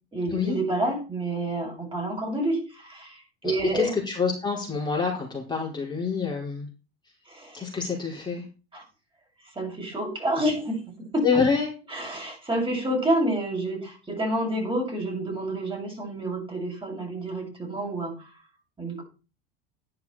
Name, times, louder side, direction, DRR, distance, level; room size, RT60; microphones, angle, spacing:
voice 1, 0.1-3.9 7.3-7.6 8.7-8.8 9.6-10.8 11.1-11.3 11.9-18.3 18.8-19.0, right 1 dB, 15° right, 0 dB, 7.4 m, -28 dB
voice 2, 3.4-6.7 7.5-8.5 11.2-11.7, left 5 dB, 15° left, -3 dB, 4.8 m, -26 dB
11.5 x 10.5 x 4.3 m, 0.32 s
hypercardioid pair, 75°, 30 cm